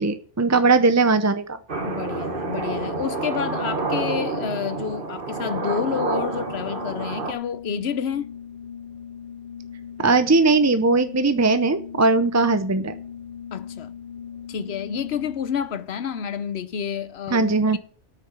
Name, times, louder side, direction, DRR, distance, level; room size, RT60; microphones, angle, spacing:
voice 1, 0.0-1.6 10.0-12.9 17.3-17.8, right 3 dB, 25° right, 0.4 m, -19 dB
sound 1, 1.7-7.3, right 3 dB, 45° right, 1.6 m, -28 dB
voice 2, 1.8-8.3 13.5-13.9 14.5-17.8, left 8 dB, 60° left, 1.0 m, -29 dB
Organ, 5.4-15.7, left 8 dB, 45° left, 2.2 m, -39 dB
9.2 x 6.7 x 8.1 m
omnidirectional pair, 1.2 m